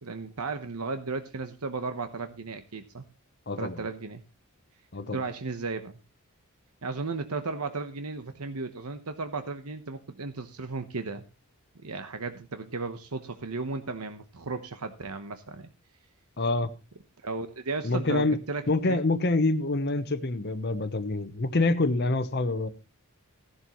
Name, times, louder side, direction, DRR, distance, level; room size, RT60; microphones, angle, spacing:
voice 1, 0.0-3.0 3.6-4.2 5.1-5.9 6.8-11.2 11.8-15.7 17.2-19.0, right 3 dB, 90° right, 1.1 m, -35 dB
voice 2, 3.5-3.8 4.9-5.2 16.4-16.7 17.8-18.4 18.7-22.7, left 2 dB, 45° left, 0.9 m, -26 dB
15.5 x 11.0 x 3.1 m
head